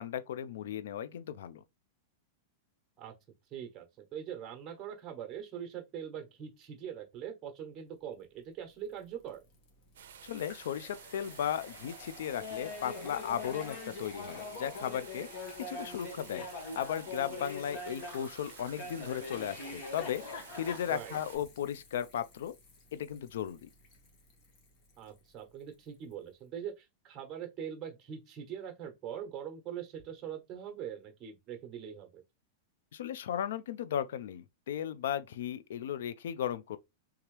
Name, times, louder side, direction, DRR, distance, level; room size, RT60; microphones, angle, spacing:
voice 1, 0.0-1.6 10.2-15.3 15.6-16.5 16.8-22.5 22.9-23.7 32.9-36.8, left 9 dB, 75° left, 0.3 m, -36 dB
voice 2, 3.5-9.4 20.9-21.2 25.0-32.2, right 9 dB, 25° right, 1.1 m, -42 dB
sound 1, 8.2-26.2, left 4 dB, 40° left, 1.3 m, -55 dB
sound 2, 9.9-21.4, right 9 dB, 85° right, 0.5 m, -52 dB
Laughter, 12.4-18.3 18.8-21.4, left 3 dB, 55° left, 1.4 m, -43 dB
3.4 x 2.9 x 3.2 m
supercardioid pair, 150°, 0 cm